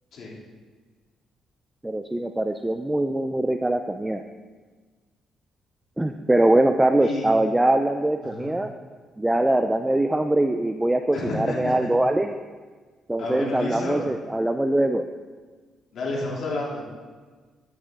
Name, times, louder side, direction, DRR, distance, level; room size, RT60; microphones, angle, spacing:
voice 1, 1.8-4.2 6.0-8.7 9.2-12.3 13.1-15.0, right 1 dB, 10° right, 7 dB, 0.4 m, -22 dB
voice 2, 8.2-8.6 11.1-11.7 13.2-14.0 15.9-16.8, left 2 dB, 65° left, -4 dB, 3.1 m, -30 dB
10.5 x 8.4 x 3.7 m, 1.4 s
cardioid pair, 90°, 0 cm